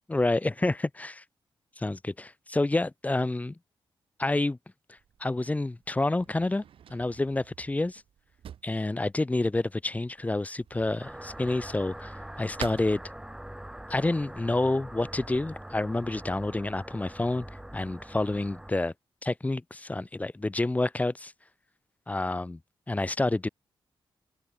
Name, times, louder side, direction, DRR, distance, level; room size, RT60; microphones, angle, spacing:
voice 1, 0.1-1.1 1.8-3.5 4.2-4.6 5.2-6.6 6.9-8.0 8.6-13.0 13.9-17.5 17.7-18.9 19.2-21.3 22.1-22.6 22.9-23.5, left 2 dB, 15° left, 0.9 m, -28 dB
Drawer open or close, 5.0-13.7, right 9 dB, 80° right, 1.5 m, -48 dB
sound 1, 11.0-18.7, right 1 dB, 5° right, 3.6 m, -43 dB
wide cardioid pair, 110°, 9 cm